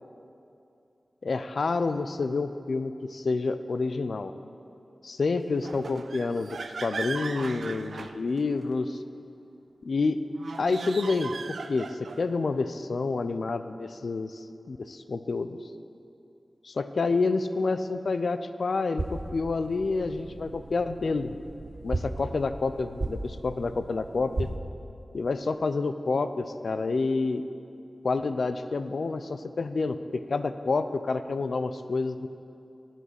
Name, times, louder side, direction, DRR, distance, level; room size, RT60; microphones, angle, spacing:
voice 1, 1.2-4.3 5.0-9.0 9.8-10.2 10.6-15.6 16.6-21.3 21.8-24.5 25.1-27.4 28.0-32.3, left 3 dB, 75° left, 11 dB, 0.4 m, -28 dB
sound 1, 5.6-8.7 10.3-12.3, right 4 dB, 85° right, 0.3 m, -38 dB
sound 2, 19.0-24.6, right 2 dB, 45° right, 0.7 m, -36 dB
11.0 x 7.4 x 6.4 m, 2.6 s
wide cardioid pair, 55°, 0 cm